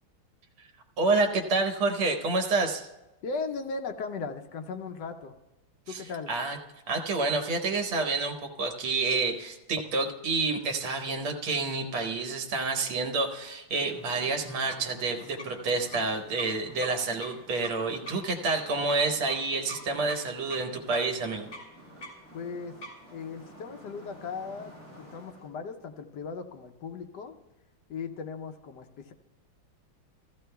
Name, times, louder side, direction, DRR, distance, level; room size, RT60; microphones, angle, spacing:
voice 1, 1.0-2.9 5.9-6.0 6.3-6.6 6.9-21.5, right 3 dB, 75° right, 4 dB, 1.9 m, -28 dB
voice 2, 3.2-5.3 5.9-6.3 22.3-22.8 23.1-27.4 27.9-29.1, left 4 dB, 70° left, 6 dB, 1.1 m, -37 dB
sound 1, 13.7-25.5, right 1 dB, 30° left, 3.0 m, -47 dB
14.5 x 14.0 x 2.3 m, 1.0 s
omnidirectional pair, 2.3 m